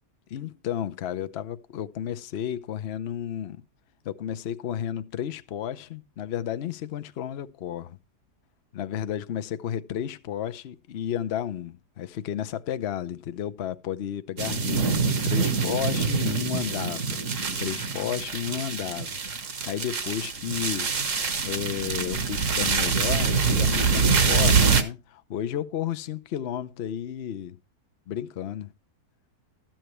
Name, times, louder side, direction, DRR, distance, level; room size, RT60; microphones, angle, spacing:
voice 1, 0.3-3.6 4.0-8.0 8.7-17.2 17.6-19.2 19.7-20.9 21.4-27.6 28.1-28.7, left 10 dB, 55° left, 0.7 m, -32 dB
sound 1, 14.4-24.8, right 5 dB, 50° right, 1.6 m, -25 dB
13.5 x 9.0 x 3.1 m
omnidirectional pair, 1.7 m